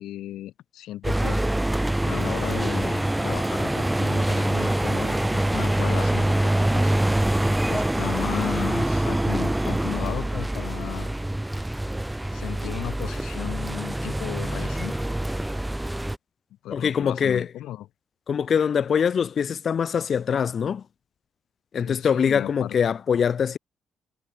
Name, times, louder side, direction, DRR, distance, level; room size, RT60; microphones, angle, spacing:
voice 1, 0.0-1.4 2.0-6.9 7.7-11.1 12.3-15.0 16.6-17.9 21.7-22.7, left 13 dB, 85° left, 7.3 m, -35 dB
sound 1, 1.0-16.2, right 1 dB, 10° right, 0.7 m, -25 dB
voice 2, 16.7-17.5 18.3-20.8 21.7-23.6, left 7 dB, 50° left, 1.4 m, -23 dB
cardioid pair, 90°, 0 cm